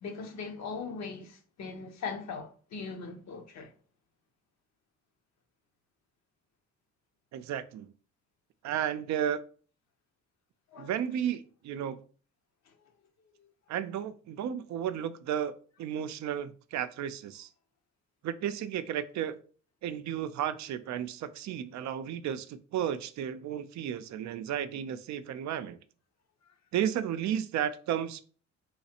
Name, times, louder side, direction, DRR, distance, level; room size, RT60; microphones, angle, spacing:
voice 1, 0.0-3.7 10.7-10.9, left 5 dB, 60° left, 0.8 m, -40 dB
voice 2, 7.3-7.9 8.6-9.4 10.8-12.0 13.7-15.5 15.8-17.5 18.2-19.4 19.8-25.8 26.7-28.2, right 9 dB, 65° right, 0.4 m, -33 dB
3.2 x 3.1 x 2.8 m
cardioid pair, 90°, 30 cm